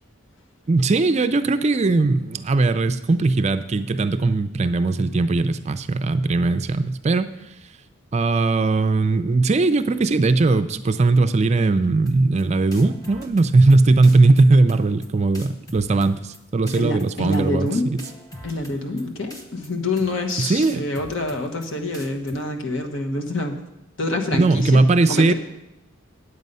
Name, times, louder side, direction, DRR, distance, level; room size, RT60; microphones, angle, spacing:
voice 1, 0.7-7.3 8.1-18.0 18.9-19.1 20.4-20.8 24.3-25.3, right 3 dB, 30° right, 10 dB, 0.4 m, -19 dB
sound 1, 12.1-12.4 12.7-13.8 14.0-14.4 14.7-15.1 15.3-16.4 16.7-17.1 17.3-17.7 18.0-19.0 19.3-19.7 20.0-20.3 20.6-21.7 21.9-22.3, left 1 dB, 15° left, 0.9 m, -40 dB
voice 2, 16.7-17.9 18.4-23.6 24.0-25.3, left 2 dB, 65° left, 3 dB, 1.3 m, -26 dB
9.3 x 8.2 x 5.4 m, 0.89 s
head